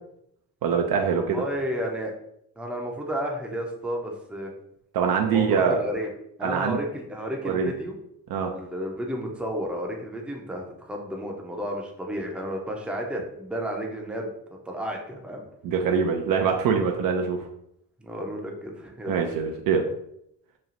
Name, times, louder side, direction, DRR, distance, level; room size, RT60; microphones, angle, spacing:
voice 1, 0.6-1.4 4.9-5.8 6.4-6.8 7.4-7.7 8.3-8.5 15.6-17.4 19.1-19.8, right 6 dB, 50° right, 3 dB, 0.5 m, -23 dB
voice 2, 1.1-2.1 2.6-4.5 5.2-6.1 6.4-8.0 8.5-14.3 14.7-15.4 18.0-19.2, equal, ahead, 0 dB, 0.6 m, -32 dB
3.0 x 2.3 x 2.6 m, 0.75 s
hypercardioid pair, 50°, 48 cm